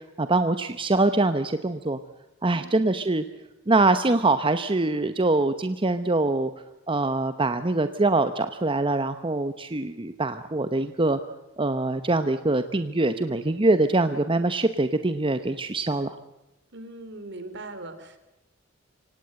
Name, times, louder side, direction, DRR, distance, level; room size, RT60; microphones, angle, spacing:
voice 1, 0.0-2.0 2.4-3.2 3.7-6.5 6.9-11.2 11.6-16.2, right 2 dB, 25° right, 10 dB, 0.9 m, -24 dB
voice 2, 2.5-2.9 16.7-18.2, right 2 dB, 60° right, 11 dB, 3.2 m, -40 dB
25.5 x 18.5 x 7.7 m, 0.93 s
head